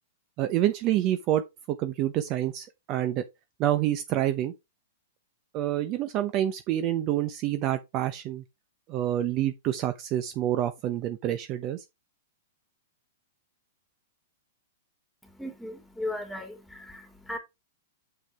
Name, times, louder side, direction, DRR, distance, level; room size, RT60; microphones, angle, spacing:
voice 1, 0.4-1.4 1.7-3.2 3.6-4.5 5.5-8.4 8.9-11.8, right 12 dB, 40° right, 0.8 m, -27 dB
voice 2, 15.2-17.4, left 1 dB, ahead, 2.7 m, -37 dB
7.0 x 6.2 x 3.4 m
hypercardioid pair, 110°, 0 cm